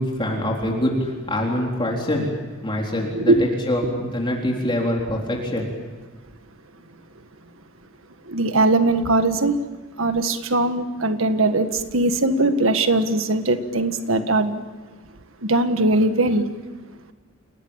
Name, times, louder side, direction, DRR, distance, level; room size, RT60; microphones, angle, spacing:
voice 1, 0.0-2.3 2.6-5.7, left 1 dB, 25° left, -1 dB, 3.9 m, -24 dB
voice 2, 8.3-9.5 10.0-14.6 15.4-16.4, right 2 dB, 75° right, 8 dB, 1.6 m, -20 dB
29.5 x 18.5 x 8.9 m, 1.3 s
head